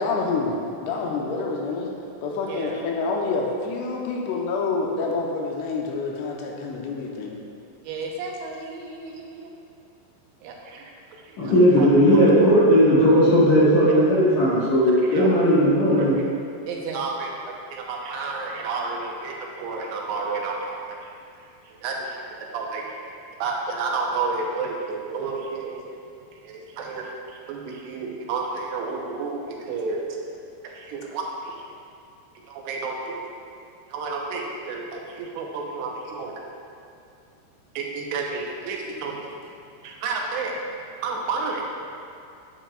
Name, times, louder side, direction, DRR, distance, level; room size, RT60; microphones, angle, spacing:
voice 1, 0.0-1.9 2.2-7.4, left 3 dB, 85° left, -1 dB, 2.8 m, -27 dB
voice 2, 2.5-2.9 7.8-9.5 10.4-10.9 11.2-12.4 13.9-14.0 14.6-15.6 15.9-16.2 16.7-17.3 17.7-21.1 21.6-22.0 22.4-23.1 23.4-25.8 26.3-30.0 30.6-31.7 32.5-33.2 33.9-36.5 37.8-39.3 39.8-40.6 41.0-41.7, right 4 dB, 85° right, -1 dB, 3.0 m, -31 dB
voice 3, 11.4-16.2, equal, 60° left, -8 dB, 2.1 m, -17 dB
9.1 x 9.1 x 2.3 m, 2.5 s
omnidirectional pair, 4.8 m